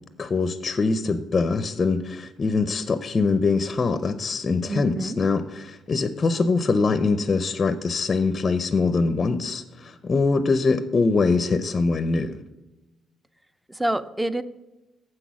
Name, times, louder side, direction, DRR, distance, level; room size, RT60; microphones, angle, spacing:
voice 1, 0.2-12.4, left 4 dB, 35° left, 12 dB, 0.5 m, -23 dB
voice 2, 4.7-5.2 13.7-14.4, right 1 dB, 10° right, 14 dB, 0.5 m, -27 dB
7.6 x 6.1 x 6.1 m, 1.1 s
cardioid pair, 90°, 0 cm